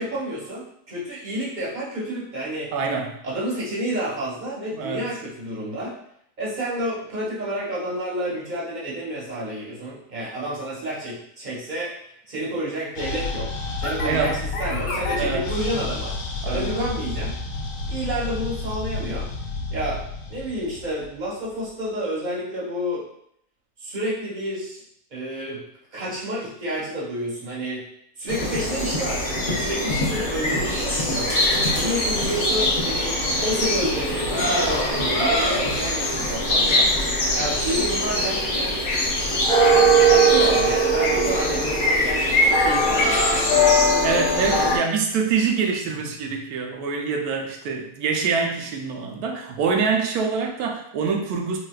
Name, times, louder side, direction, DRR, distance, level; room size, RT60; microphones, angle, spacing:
voice 1, 0.0-2.7 3.2-5.9 6.4-11.9 12.3-13.5 13.8-16.2 16.4-17.3 17.9-19.3 19.7-20.0 20.3-23.0 23.8-24.8 25.1-25.6 25.9-27.8 28.2-31.3 31.7-33.1 33.4-36.9 37.3-38.8 39.7-43.5, right 1 dB, 35° right, -6 dB, 0.9 m, -29 dB
voice 2, 2.7-3.2 4.8-5.0 14.0-14.4 15.2-15.4 16.4-16.7 44.0-51.6, right 5 dB, 80° right, 2 dB, 1.1 m, -25 dB
sound 1, 13.0-21.5, left 3 dB, 80° left, 1.1 m, -30 dB
sound 2, 28.3-44.8, equal, 45° left, 0.7 m, -21 dB
4.0 x 2.4 x 2.2 m, 0.72 s
omnidirectional pair, 1.6 m